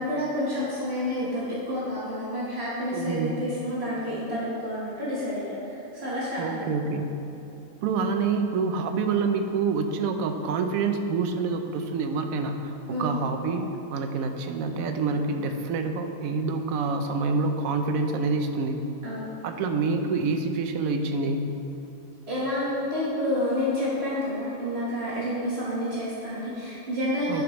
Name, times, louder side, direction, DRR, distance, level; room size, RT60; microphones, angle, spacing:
voice 1, 0.0-6.7 12.9-13.1 19.0-19.3 22.3-27.4, left 1 dB, 50° right, -8 dB, 1.5 m, -29 dB
voice 2, 2.9-3.4 6.4-7.1 7.8-18.8 19.4-21.5 27.3-27.4, right 4 dB, 90° right, 6 dB, 1.0 m, -27 dB
10.0 x 5.1 x 3.0 m, 2.9 s
omnidirectional pair, 1.4 m